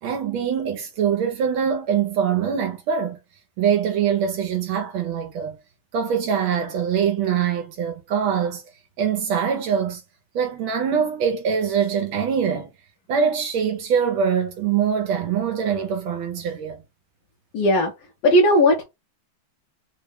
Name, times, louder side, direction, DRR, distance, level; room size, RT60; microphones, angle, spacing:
voice 1, 0.0-3.2 3.6-5.6 5.9-8.6 9.0-10.0 10.3-12.7 13.1-16.8, right 7 dB, 75° right, 1.5 m, -23 dB
voice 2, 17.5-17.9 18.2-18.8, left 1 dB, 70° left, 1.6 m, -16 dB
4.1 x 2.2 x 3.4 m
omnidirectional pair, 2.3 m